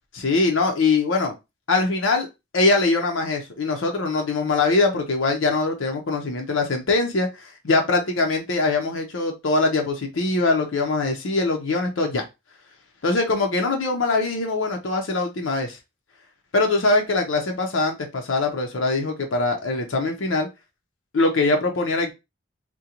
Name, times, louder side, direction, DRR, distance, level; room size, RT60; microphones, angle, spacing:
voice 1, 0.1-1.3 1.7-2.3 2.5-12.2 13.0-15.8 16.5-20.5 21.1-22.1, left 3 dB, 75° left, 3 dB, 0.6 m, -22 dB
3.7 x 2.2 x 2.8 m, 0.24 s
head